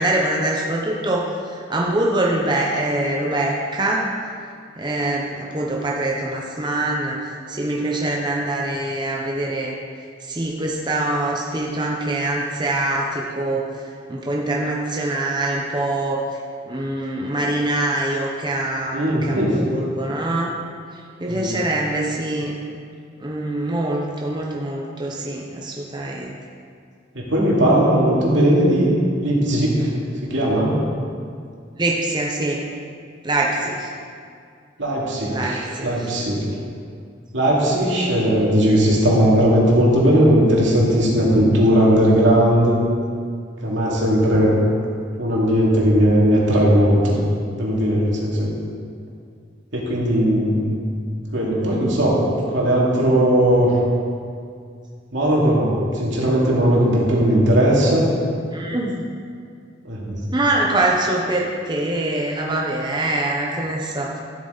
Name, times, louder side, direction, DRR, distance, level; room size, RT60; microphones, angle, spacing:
voice 1, 0.0-4.1 4.8-9.7 10.2-13.8 14.1-16.2 16.7-20.5 20.9-22.5 23.2-26.4 31.8-32.6 33.2-33.9 35.3-36.1 58.5-59.1 60.3-64.2, right 1 dB, 25° right, -2 dB, 0.9 m, -24 dB
voice 2, 18.9-19.6 21.3-21.5 27.1-28.9 29.2-29.9 30.2-30.8 34.8-36.4 37.3-42.7 43.6-44.5 45.2-47.2 47.6-48.5 49.7-50.8 51.3-52.2 52.5-53.7 55.1-58.2 59.8-60.2, equal, 80° right, -4 dB, 2.6 m, -18 dB
13.0 x 8.0 x 4.0 m, 2.2 s
head